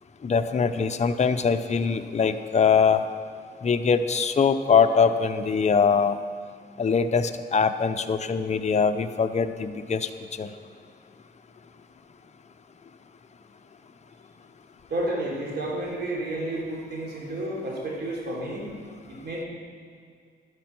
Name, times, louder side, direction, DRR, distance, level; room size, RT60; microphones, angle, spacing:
voice 1, 0.2-3.0 3.6-6.2 6.8-10.1 10.4-10.5, left 6 dB, 35° left, 8 dB, 0.6 m, -22 dB
voice 2, 14.9-18.7 19.1-19.5, right 1 dB, 60° right, -3 dB, 3.5 m, -31 dB
12.0 x 9.7 x 6.1 m, 2.2 s
cardioid pair, 85°, 20 cm